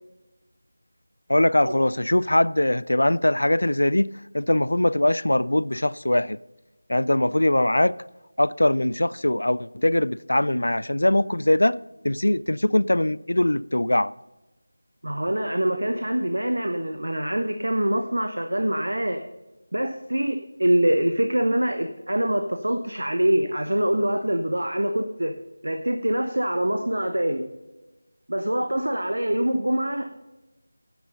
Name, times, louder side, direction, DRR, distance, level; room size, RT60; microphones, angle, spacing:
voice 1, 1.3-6.4 6.9-8.0 8.4-11.8 12.0-14.1, left 1 dB, 70° left, 0.3 m, -21 dB
voice 2, 15.0-19.2 19.7-25.3 25.6-27.4 28.3-30.1, right 1 dB, 75° right, 0.9 m, -24 dB
11.0 x 8.0 x 5.4 m
figure-of-eight pair, 165°, 0 cm